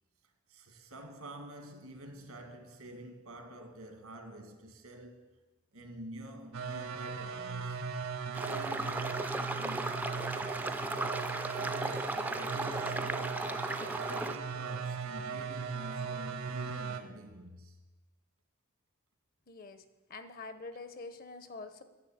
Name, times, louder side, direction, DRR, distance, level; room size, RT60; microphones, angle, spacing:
voice 1, 0.5-5.3 5.7-7.9 8.2-10.7 11.5-17.8, right 1 dB, 90° right, 1.9 m, -48 dB
sound 1, 6.5-17.0, right 5 dB, 75° right, 1.0 m, -38 dB
sound 2, 8.3-14.4, right 2 dB, 5° right, 0.4 m, -36 dB
voice 2, 19.5-19.8 20.1-21.8, left 3 dB, 40° left, 0.8 m, -45 dB
10.5 x 7.1 x 8.8 m
head